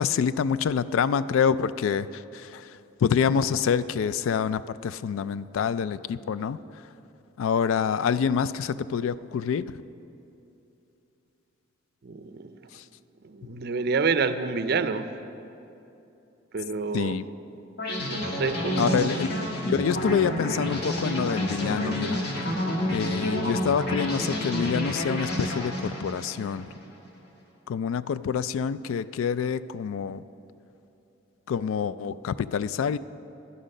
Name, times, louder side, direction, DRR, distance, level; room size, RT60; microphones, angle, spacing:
voice 1, 0.0-6.9 7.4-9.7 12.7-12.8 13.5-13.6 16.9-17.3 18.8-19.3 19.6-22.2 22.9-26.7 27.7-30.2 31.5-33.0, left 7 dB, 75° left, 16 dB, 0.3 m, -27 dB
voice 2, 12.0-12.6 13.2-15.1 16.5-17.2 18.0-19.1, right 4 dB, 50° right, 11 dB, 0.5 m, -28 dB
sound 1, 17.8-26.8, left 1 dB, 50° left, 1.6 m, -29 dB
11.5 x 10.0 x 5.4 m, 2.9 s
head